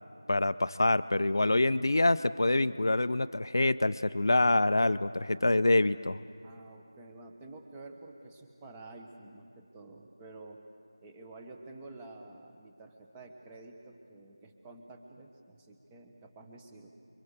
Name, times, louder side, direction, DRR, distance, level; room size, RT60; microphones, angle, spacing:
voice 1, 0.3-6.2, left 2 dB, 55° left, 13 dB, 0.7 m, -26 dB
voice 2, 6.4-10.6 11.0-16.9, right 2 dB, 10° right, 3 dB, 1.2 m, -50 dB
28.5 x 23.5 x 6.6 m, 2.4 s
figure-of-eight pair, 170°, 2 cm